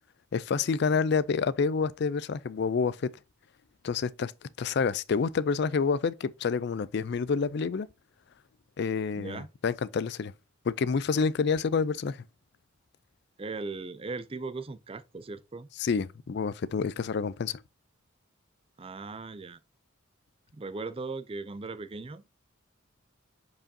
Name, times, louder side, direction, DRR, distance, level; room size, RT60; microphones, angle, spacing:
voice 1, 0.3-3.1 3.8-4.3 4.6-7.9 8.8-10.3 10.7-12.2 15.8-17.6, left 5 dB, 55° left, 0.4 m, -28 dB
voice 2, 9.1-9.5 13.4-15.7 18.8-19.6 20.5-22.3, right 3 dB, 25° right, 0.5 m, -38 dB
7.6 x 4.8 x 2.7 m
head